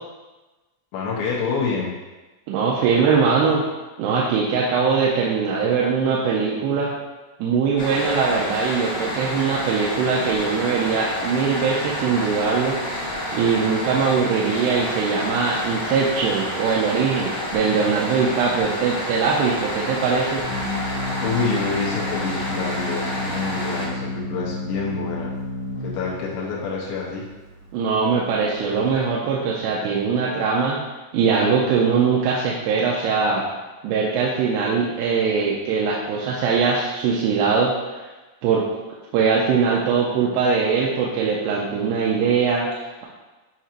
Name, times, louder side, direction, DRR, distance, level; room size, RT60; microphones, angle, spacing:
voice 1, 0.9-1.9 21.2-25.3 25.8-27.3, left 4 dB, 90° left, -4 dB, 3.1 m, -27 dB
voice 2, 2.5-3.6 4.0-6.9 7.4-12.8 13.3-20.4 27.7-30.8 31.1-33.5 33.8-37.7 38.4-38.6 39.1-43.1, right 5 dB, 80° right, -4 dB, 2.6 m, -21 dB
sound 1, 7.8-23.9, left 1 dB, 35° left, 1.5 m, -29 dB
Organ, 18.6-29.1, left 2 dB, 60° right, 1.3 m, -32 dB
9.2 x 4.3 x 2.5 m, 1.2 s
omnidirectional pair, 5.0 m